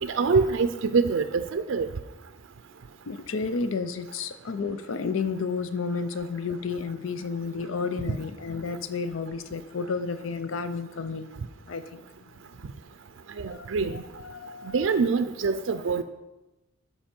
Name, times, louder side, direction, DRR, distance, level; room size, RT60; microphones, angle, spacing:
voice 1, 0.0-1.9 13.4-14.0 14.7-16.0, right 4 dB, 75° right, 9 dB, 0.4 m, -25 dB
voice 2, 3.1-11.3 11.6-12.0 12.6-12.8 13.5-15.0, left 4 dB, 85° left, 10 dB, 0.5 m, -32 dB
12.5 x 5.6 x 4.4 m, 1.0 s
head